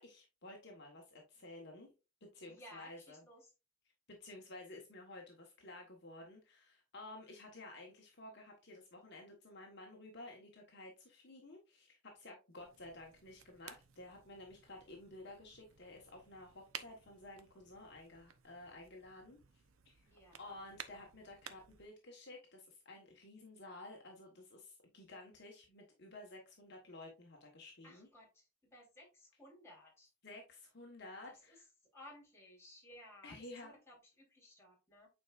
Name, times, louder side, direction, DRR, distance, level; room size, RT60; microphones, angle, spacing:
voice 1, 0.0-1.9 2.3-3.2 4.1-19.4 19.8-20.1 20.4-28.1 30.2-31.6 33.2-33.7, left 2 dB, 55° left, 0 dB, 1.3 m, -53 dB
voice 2, 2.5-3.5 20.0-20.6 27.8-30.1 31.3-31.6 31.9-35.1, left 1 dB, 10° left, -4 dB, 3.6 m, -58 dB
sound 1, 12.5-21.9, right 8 dB, 80° right, 0.7 m, -56 dB
9.2 x 4.6 x 2.5 m, 0.28 s
head